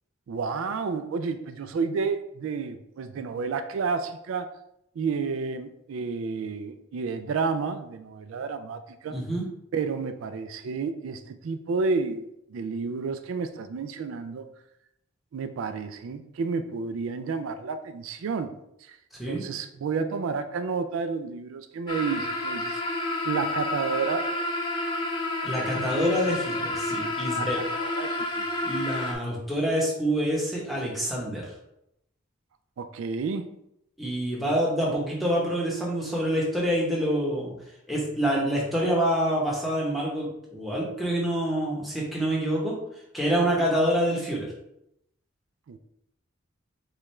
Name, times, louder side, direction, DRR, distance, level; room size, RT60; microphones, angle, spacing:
voice 1, 0.3-4.5 5.0-9.2 9.7-14.5 15.3-18.5 18.8-19.0 19.3-22.8 23.2-24.3 25.8-26.2 27.3-28.5 32.8-33.6 45.7-45.8, right 5 dB, 80° right, 9 dB, 0.3 m, -31 dB
voice 2, 9.1-9.5 19.2-19.5 25.4-27.6 28.6-31.5 34.0-37.5 37.9-42.8 43.1-44.5, equal, ahead, -4 dB, 1.0 m, -26 dB
sound 1, 21.9-29.1, left 2 dB, 20° left, 0.5 m, -30 dB
5.0 x 2.3 x 4.2 m, 0.80 s
head